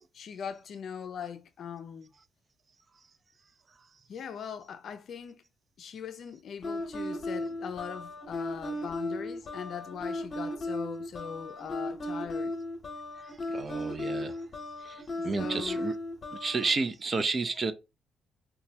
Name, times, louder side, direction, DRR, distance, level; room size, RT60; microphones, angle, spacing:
voice 1, 0.1-2.1 4.1-5.4 5.8-12.5 15.2-15.9, left 7 dB, 60° left, 0.4 m, -40 dB
sound 1, 6.6-16.7, left 1 dB, 40° left, 0.8 m, -36 dB
voice 2, 13.5-14.3 15.2-15.9 16.4-17.7, right 4 dB, 35° right, 0.4 m, -30 dB
3.0 x 2.2 x 2.7 m
cardioid pair, 90°, 0 cm